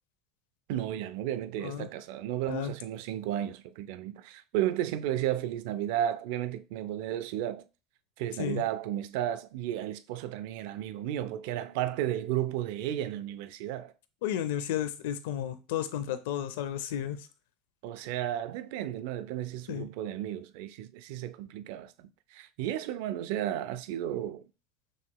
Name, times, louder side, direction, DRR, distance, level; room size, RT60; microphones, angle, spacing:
voice 1, 0.7-7.7 8.2-13.9 17.8-24.4, right 12 dB, 70° right, 0.3 m, -33 dB
voice 2, 14.2-17.3 19.7-19.9, left 10 dB, 85° left, 0.5 m, -33 dB
6.3 x 2.9 x 2.2 m
supercardioid pair, 140°, 0 cm